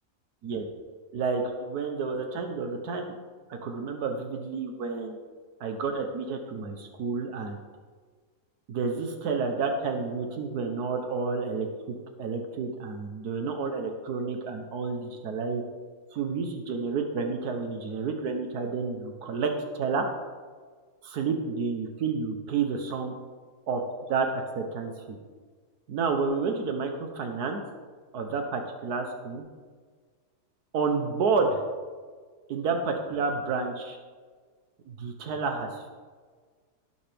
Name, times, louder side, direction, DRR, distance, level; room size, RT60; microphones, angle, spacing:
voice 1, 1.1-3.1 3.5-5.3 5.6-7.6 8.7-11.7 12.2-15.6 16.1-20.0 21.0-23.1 23.7-23.8 24.1-24.3 24.6-25.2 25.9-27.6 28.1-29.4 30.7-31.6 32.5-34.0 34.9-35.9, right 4 dB, 85° right, 4 dB, 1.5 m, -30 dB
17.0 x 7.0 x 3.5 m, 1.5 s
omnidirectional pair, 1.6 m